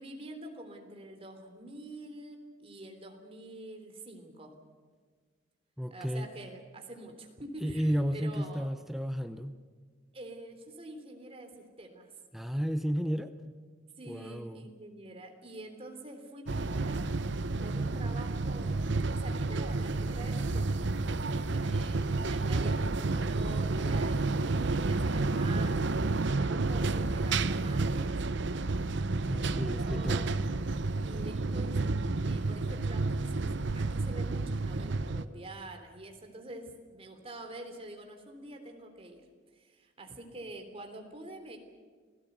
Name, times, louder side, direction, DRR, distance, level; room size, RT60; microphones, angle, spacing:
voice 1, 0.0-4.5 5.9-8.7 10.1-12.1 14.0-17.1 17.6-25.8 26.4-28.9 29.3-30.2 31.0-31.8 32.2-39.2 39.5-41.6, right 2 dB, 30° right, 4 dB, 3.4 m, -46 dB
voice 2, 5.8-6.3 7.6-9.6 12.3-13.5 14.1-14.6 29.3-30.3, equal, ahead, 8 dB, 0.8 m, -33 dB
sound 1, 16.5-35.2, right 3 dB, 65° right, 0.8 m, -30 dB
28.0 x 17.5 x 8.1 m, 1.6 s
head